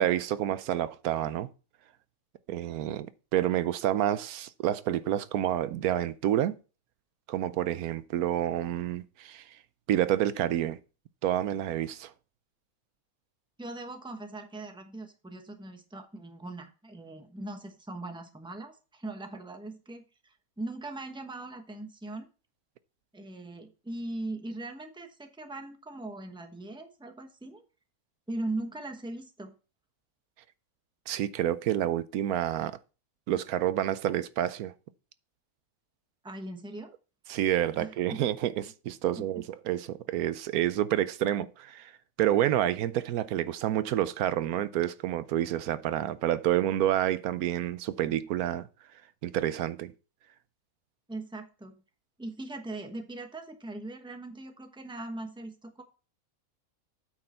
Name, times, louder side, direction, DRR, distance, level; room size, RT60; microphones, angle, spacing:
voice 1, 0.0-1.5 2.5-6.6 7.3-9.6 9.9-10.8 11.2-12.1 31.1-32.8 33.3-34.7 37.3-41.9 42.2-48.7 49.2-49.9, right 12 dB, 85° right, 1.1 m, -28 dB
voice 2, 13.6-22.3 23.1-27.6 28.3-29.5 36.2-36.9 37.8-38.2 39.0-39.4 51.1-51.8 52.2-55.8, right 2 dB, 5° right, 0.9 m, -40 dB
8.7 x 6.5 x 4.3 m
omnidirectional pair, 1.5 m